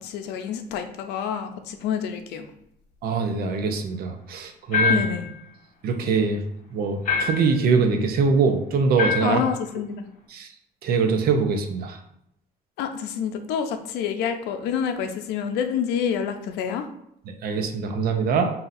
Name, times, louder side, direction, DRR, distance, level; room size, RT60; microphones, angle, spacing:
voice 1, 0.0-2.5 4.9-5.3 9.2-10.1 12.8-16.9, left 8 dB, 90° left, 7 dB, 0.5 m, -28 dB
voice 2, 3.0-5.0 5.8-6.4 6.7-9.4 10.3-10.5 10.8-12.0 17.4-18.5, right 5 dB, 65° right, 5 dB, 0.7 m, -23 dB
sound 1, 4.7-5.3 7.0-7.6 9.0-9.4, left 6 dB, 50° left, 1.2 m, -24 dB
5.5 x 2.8 x 2.6 m, 0.76 s
cardioid pair, 110°, 17 cm